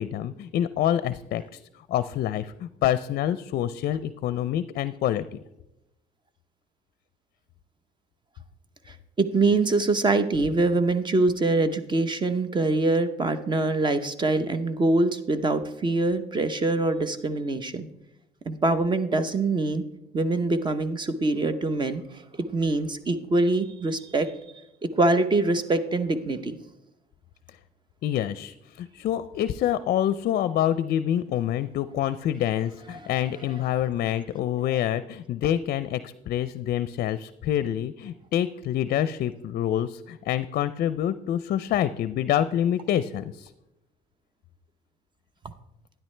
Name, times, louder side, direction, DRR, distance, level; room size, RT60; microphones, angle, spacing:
voice 1, 0.0-1.4 1.9-5.4 28.0-43.5, left 11 dB, 60° left, 14 dB, 0.5 m, -27 dB
voice 2, 8.9-17.9 18.4-19.8 20.1-22.0 22.4-24.3 24.9-26.6, right 2 dB, 25° right, 11 dB, 0.9 m, -24 dB
12.0 x 10.0 x 3.3 m, 0.89 s
cardioid pair, 110°, 17 cm